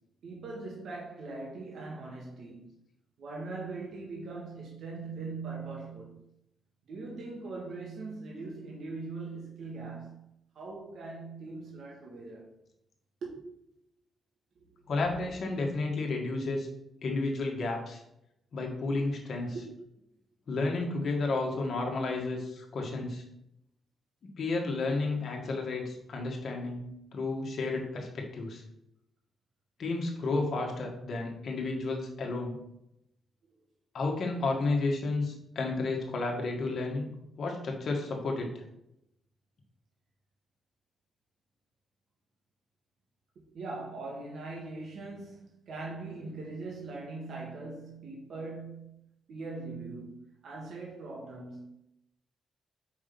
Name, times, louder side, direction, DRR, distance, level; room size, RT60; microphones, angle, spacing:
voice 1, 0.2-2.7 3.2-6.2 6.9-10.3 10.5-12.5 13.2-13.4 14.7-14.8 19.5-19.7 43.5-49.0 49.3-51.7, right 3 dB, 65° right, 1.2 m, -41 dB
voice 2, 14.9-16.7 17.0-18.0 18.5-19.6 20.5-23.2 24.4-28.6 29.8-32.6 33.9-37.1 37.4-38.5, left 3 dB, 55° left, 1.5 m, -32 dB
5.3 x 3.6 x 5.2 m
cardioid pair, 125°, 0 cm